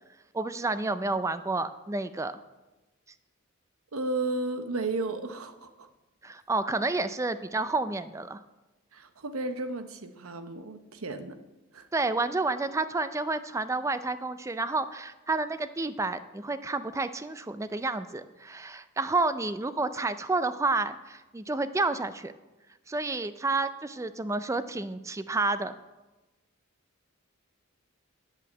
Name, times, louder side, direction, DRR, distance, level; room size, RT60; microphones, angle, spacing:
voice 1, 0.3-2.3 6.2-8.4 11.9-22.3 22.9-25.7, right 3 dB, 15° right, 12 dB, 0.4 m, -30 dB
voice 2, 3.9-5.9 8.9-11.4 11.7-11.9, right 2 dB, 90° right, 9 dB, 0.9 m, -33 dB
10.5 x 5.6 x 7.1 m, 1.1 s
head